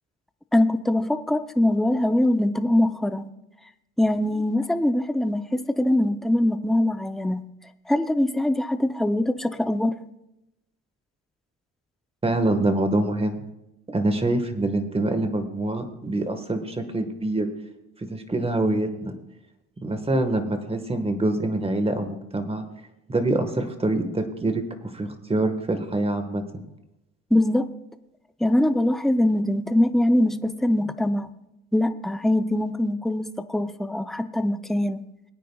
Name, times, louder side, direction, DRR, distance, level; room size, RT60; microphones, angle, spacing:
voice 1, 0.5-3.3 4.0-7.4 7.9-10.0 27.3-27.7 28.4-31.3 31.7-35.1, left 1 dB, ahead, 10 dB, 0.5 m, -22 dB
voice 2, 12.2-13.4 13.9-17.5 18.0-19.1 19.8-22.6 23.1-24.6 24.9-26.6, right 2 dB, 20° right, 7 dB, 1.4 m, -25 dB
21.5 x 9.1 x 2.3 m, 0.89 s
cardioid pair, 90°, 30 cm